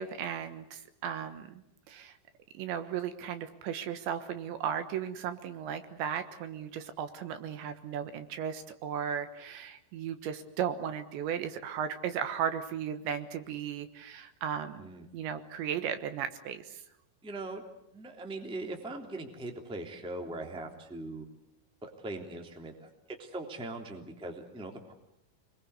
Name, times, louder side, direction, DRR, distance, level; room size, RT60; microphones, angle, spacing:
voice 1, 0.0-1.6 1.9-2.2 2.5-14.9 15.1-16.8, right 8 dB, 70° right, 9 dB, 3.3 m, -36 dB
voice 2, 17.2-17.6 17.9-21.2 21.8-24.9, right 2 dB, ahead, 3 dB, 1.7 m, -41 dB
29.0 x 22.0 x 8.2 m, 0.80 s
omnidirectional pair, 5.8 m